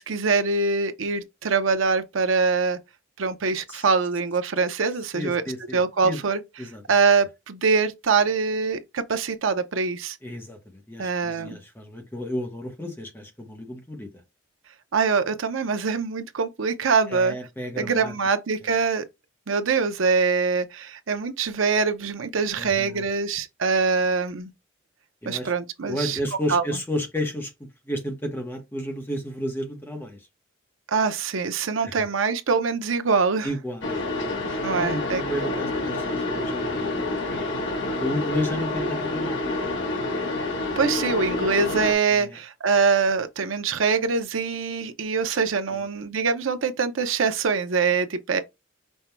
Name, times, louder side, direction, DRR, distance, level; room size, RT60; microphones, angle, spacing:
voice 1, 0.0-2.8 3.2-5.4 5.7-6.4 6.9-10.2 11.0-11.6 14.9-17.4 17.8-19.0 19.5-24.5 25.3-26.2 26.5-26.6 30.9-33.5 34.6-35.2 40.8-48.4, right 5 dB, 85° right, 0.7 m, -24 dB
voice 2, 5.1-6.2 6.6-6.8 10.2-14.1 17.1-18.1 18.6-18.7 22.5-23.1 25.2-25.5 25.8-27.5 27.8-30.3 31.8-32.1 33.4-34.5 34.8-39.9 42.1-42.4, equal, 10° left, 0.8 m, -32 dB
sound 1, 33.8-41.9, left 2 dB, 70° left, 1.1 m, -28 dB
5.4 x 2.2 x 4.4 m
head